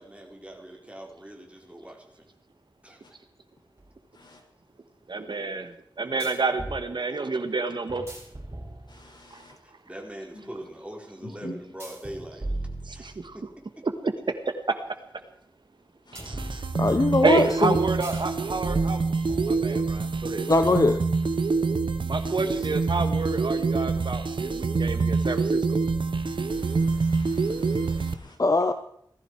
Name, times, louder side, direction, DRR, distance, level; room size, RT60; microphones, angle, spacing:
voice 1, 0.0-2.3 2.8-3.2 9.3-9.4 9.6-12.5 12.9-13.5, right 1 dB, 15° right, 1 dB, 4.5 m, -42 dB
sound 1, 3.8-3.9 6.2-6.8 7.9-9.2 11.8-13.5 16.1-17.1 18.0-18.3 18.6-20.0, right 1 dB, 35° right, 7.9 m, -37 dB
voice 2, 5.1-8.1 12.9-13.5 13.8-14.8 17.2-19.1 19.4-20.5 22.1-25.8, right 3 dB, 70° right, 8 dB, 2.0 m, -29 dB
voice 3, 8.9-9.6 10.3-10.5 11.2-11.6 16.1-16.6 22.2-22.4 26.5-28.4, left 1 dB, 70° left, 0 dB, 5.9 m, -46 dB
sound 2, 16.1-28.1, right 4 dB, 90° right, 1.0 m, -26 dB
voice 4, 16.8-17.7 20.5-21.0 28.4-28.7, left 3 dB, 45° left, 8 dB, 1.1 m, -21 dB
18.5 x 15.0 x 4.9 m, 0.67 s
wide cardioid pair, 70°, 8 cm